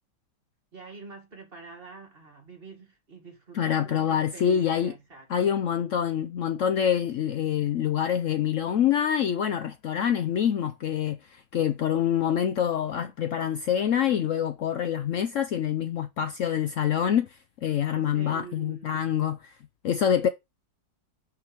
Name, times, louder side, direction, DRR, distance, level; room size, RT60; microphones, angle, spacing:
voice 1, 0.7-5.6 17.9-19.1, right 4 dB, 30° right, 2.2 m, -46 dB
voice 2, 3.5-4.9 5.3-19.5 19.8-20.3, left 9 dB, 90° left, 0.6 m, -26 dB
6.2 x 5.7 x 4.5 m
omnidirectional pair, 2.0 m